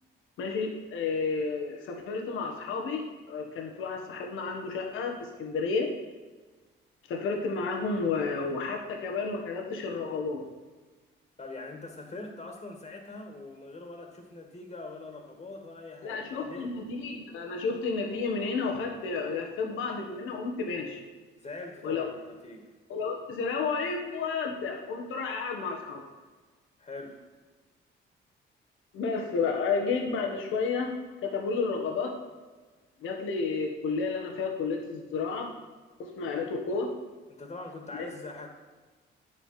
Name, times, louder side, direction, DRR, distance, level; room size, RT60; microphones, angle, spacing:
voice 1, 0.4-5.9 7.1-10.4 16.0-21.0 21.8-22.1 22.9-26.0 28.9-30.9 31.2-32.1 33.0-35.5 36.0-36.9 37.9-38.1, left 4 dB, 85° left, 2 dB, 1.6 m, -31 dB
voice 2, 11.4-16.7 21.4-22.7 26.8-27.2 37.3-38.5, left 2 dB, 35° left, 2 dB, 2.0 m, -43 dB
9.8 x 8.1 x 5.8 m, 1.3 s
cardioid pair, 90°, 20 cm